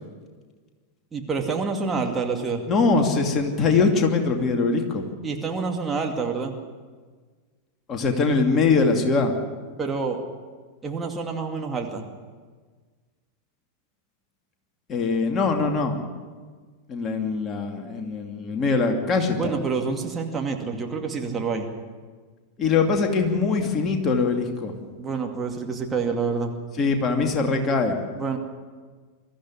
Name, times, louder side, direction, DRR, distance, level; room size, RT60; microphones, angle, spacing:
voice 1, 1.1-2.6 5.2-6.5 9.8-10.2 10.8-12.0 19.4-21.7 25.0-26.5 28.2-28.4, right 4 dB, 15° right, 1 dB, 2.4 m, -27 dB
voice 2, 2.7-5.0 7.9-9.3 14.9-16.0 16.9-19.5 22.6-24.7 26.8-28.0, left 4 dB, 25° left, 3 dB, 2.7 m, -22 dB
23.5 x 14.0 x 9.9 m, 1.5 s
figure-of-eight pair, 90°, 0 cm